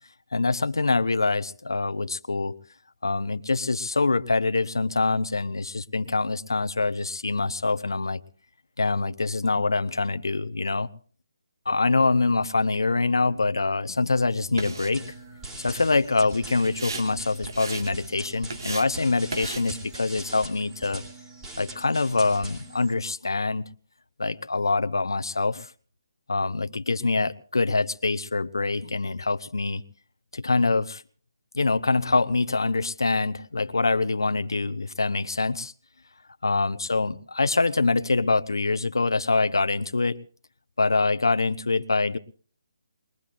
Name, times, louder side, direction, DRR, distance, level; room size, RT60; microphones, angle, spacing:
voice 1, 0.3-2.6 3.0-8.2 8.8-10.9 11.7-15.0 15.6-21.0 21.6-23.6 24.2-25.7 26.3-29.8 30.3-31.0 31.5-35.7 36.4-40.2 40.8-42.2, left 3 dB, 85° left, 12 dB, 0.9 m, -25 dB
sound 1, 13.9-20.0, right 3 dB, 70° right, 1.9 m, -39 dB
sound 2, 14.9-22.9, right 2 dB, 10° right, 3.3 m, -42 dB
22.0 x 21.5 x 2.5 m, 0.43 s
hypercardioid pair, 160°, 2 cm